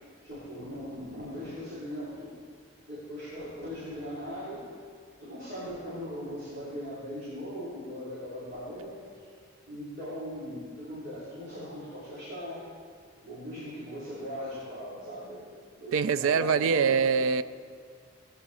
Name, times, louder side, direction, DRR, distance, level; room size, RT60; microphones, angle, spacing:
voice 1, 0.2-2.3 2.8-4.9 5.2-12.7 13.2-17.1, equal, 45° right, 3.6 m, -39 dB
voice 2, 15.9-17.4, right 6 dB, 80° right, 0.4 m, -24 dB
17.0 x 9.9 x 4.2 m
head